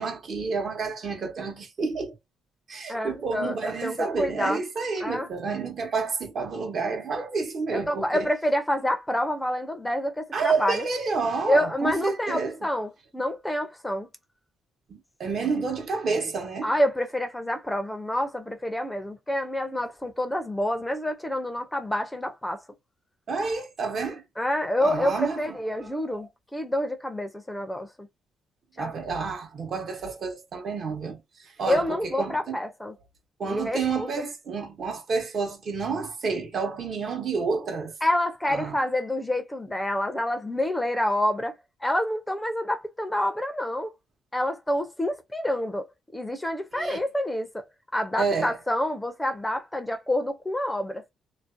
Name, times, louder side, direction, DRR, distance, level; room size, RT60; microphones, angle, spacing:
voice 1, 0.0-2.1 2.7-8.3 10.3-12.6 14.9-16.7 23.3-24.2 24.8-26.2 28.8-32.6 33.4-37.9 38.5-38.8 46.7-47.0 48.2-48.6, right 4 dB, 55° right, 0.9 m, -29 dB
voice 2, 2.9-4.6 5.0-5.3 7.7-10.8 11.5-14.1 16.6-22.6 24.4-28.1 28.8-28.9 31.7-32.9 33.5-34.1 38.0-41.6 41.8-43.9 44.3-45.9 46.1-47.7 47.9-51.1, left 1 dB, 10° left, 0.5 m, -27 dB
2.5 x 2.1 x 2.4 m
cardioid pair, 90°, 0 cm